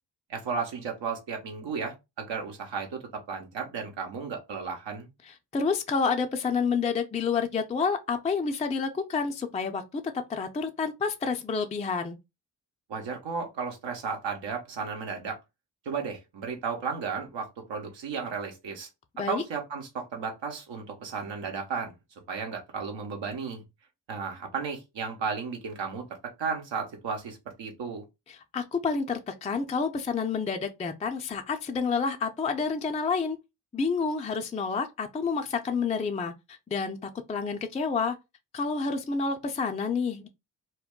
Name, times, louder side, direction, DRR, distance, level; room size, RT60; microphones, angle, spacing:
voice 1, 0.3-5.1 12.9-15.4 15.8-18.9 19.3-21.9 22.3-23.6 24.1-26.1 26.4-28.0, right 5 dB, 75° right, 1.0 m, -34 dB
voice 2, 5.5-12.2 19.2-19.4 28.3-33.4 33.7-38.2 38.5-40.3, left 5 dB, 15° left, 0.4 m, -29 dB
2.2 x 2.1 x 3.6 m
supercardioid pair, 45°, 45 cm